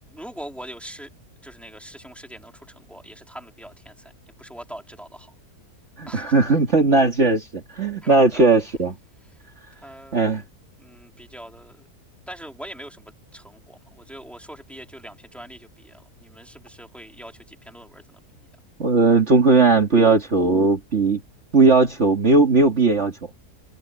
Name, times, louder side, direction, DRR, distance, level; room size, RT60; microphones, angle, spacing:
voice 1, 0.1-1.1 1.4-4.1 4.4-5.3 6.1-6.4 8.0-8.4 9.8-10.4 10.8-11.9 12.3-18.0, right 1 dB, ahead, 3.9 m, -42 dB
voice 2, 6.0-9.0 10.1-10.4 18.8-21.2 21.5-23.1, right 3 dB, 45° right, 2.4 m, -17 dB
omnidirectional pair, 1.7 m